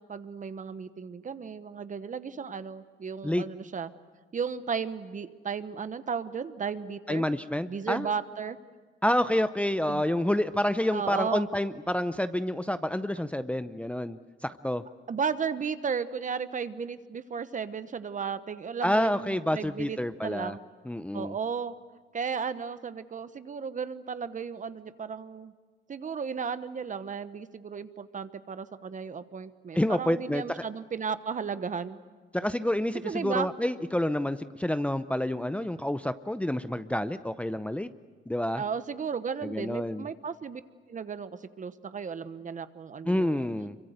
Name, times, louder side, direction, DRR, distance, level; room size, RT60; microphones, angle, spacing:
voice 1, 0.0-3.9 4.3-7.3 7.7-8.6 9.9-10.0 10.9-11.5 15.1-20.6 21.1-21.7 22.1-25.5 25.9-32.0 33.0-33.5 38.6-40.6 40.9-43.5, right 6 dB, 40° right, 13 dB, 1.1 m, -34 dB
voice 2, 7.1-8.1 9.0-14.8 18.8-20.6 20.9-21.3 29.7-30.4 32.3-37.9 38.3-38.6 39.4-40.1 43.1-43.8, left 1 dB, 5° left, 11 dB, 0.7 m, -28 dB
25.5 x 23.5 x 8.0 m, 1.4 s
cardioid pair, 90°, 20 cm